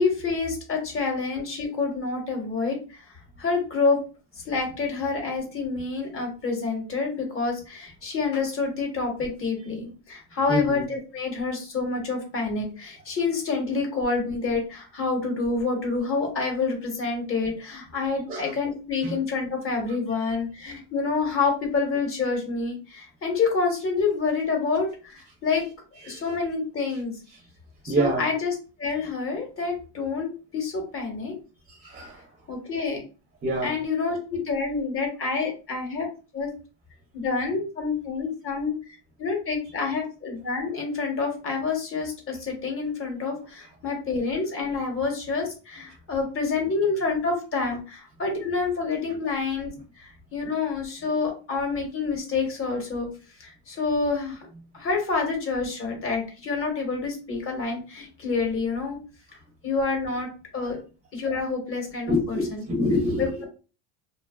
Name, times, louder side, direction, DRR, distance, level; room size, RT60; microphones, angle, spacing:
voice 1, 0.0-4.0 4.4-25.6 26.0-27.1 27.8-28.5 28.8-31.3 32.5-33.0 33.6-36.1 36.3-36.5 37.1-53.1 53.4-54.5 54.7-59.0 59.6-60.3 60.5-60.8 61.1-62.6 63.2-63.3, left 4 dB, 30° left, 1 dB, 0.9 m, -28 dB
voice 2, 10.5-10.8 18.3-18.5 19.0-19.1 20.3-20.4 26.0-26.2 27.9-28.2 31.7-32.3 33.4-33.7 60.6-60.7 62.1-63.5, equal, 20° right, 1 dB, 0.5 m, -26 dB
2.7 x 2.2 x 2.2 m, 0.35 s
cardioid pair, 125°, 42 cm